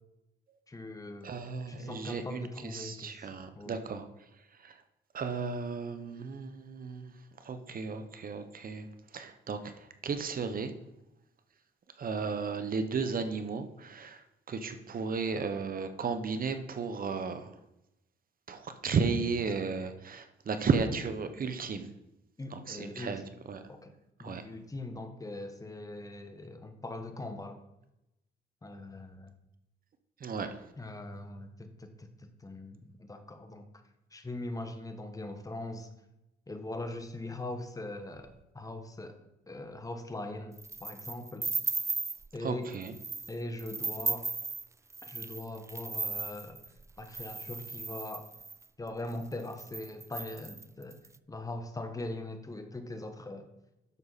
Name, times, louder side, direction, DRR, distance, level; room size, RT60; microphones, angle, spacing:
voice 1, 0.7-1.3 1.7-3.3 3.5-3.8 22.4-23.3 23.7-27.6 28.6-29.3 30.8-33.7 34.1-35.9 36.5-41.5 42.3-42.7 43.3-44.3 45.0-46.6 47.0-48.3 48.8-51.0 51.3-53.5, left 2 dB, 15° left, 7 dB, 1.3 m, -41 dB
voice 2, 1.2-4.0 4.6-4.8 5.1-7.1 7.4-10.7 12.0-17.5 18.5-21.9 22.5-23.2 23.5-23.6 24.2-24.5 30.2-30.6 42.4-42.9, right 5 dB, 45° right, 9 dB, 1.1 m, -34 dB
sound 1, 40.6-42.3 42.7-43.3 43.6-48.6 49.2-49.3 49.5-51.1, right 4 dB, 15° right, 0.3 m, -36 dB
11.0 x 6.7 x 4.2 m, 0.90 s
cardioid pair, 90°, 20 cm